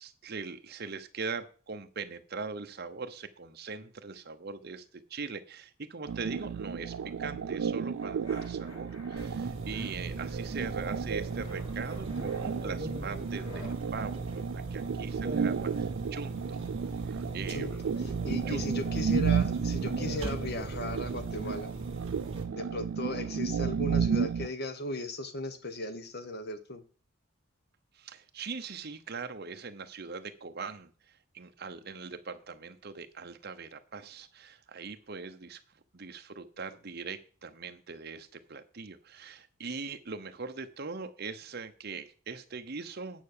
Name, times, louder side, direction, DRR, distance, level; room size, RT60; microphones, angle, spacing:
voice 1, 0.0-4.8 5.1-16.6 17.0-17.7 18.5-18.7 27.9-35.6 35.9-43.2, right 4 dB, 50° right, 8 dB, 0.9 m, -41 dB
sound 1, 6.1-24.5, right 6 dB, 75° right, 0.4 m, -33 dB
sound 2, 8.0-9.3 9.7-10.6 10.9-13.8, left 1 dB, 80° left, 5.1 m, -52 dB
sound 3, 9.2-22.4, right 2 dB, 25° right, 2.0 m, -39 dB
voice 2, 18.0-21.7 22.5-26.8, left 2 dB, 50° left, 10 dB, 1.2 m, -37 dB
9.2 x 5.6 x 6.7 m, 0.40 s
head